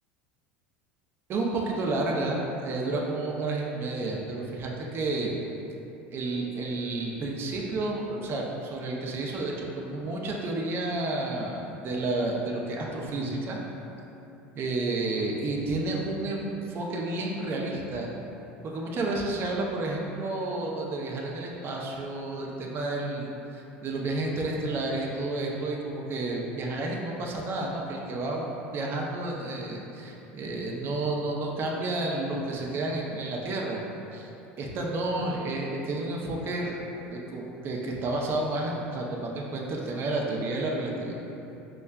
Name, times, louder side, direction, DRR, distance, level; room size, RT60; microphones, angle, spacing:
voice 1, 1.3-5.3 6.1-13.6 14.5-18.1 18.6-33.8 34.1-34.3 34.6-36.8 37.1-41.1, right 2 dB, 40° right, -2 dB, 0.5 m, -31 dB
5.3 x 2.3 x 2.2 m, 2.9 s
supercardioid pair, 95°, 6 cm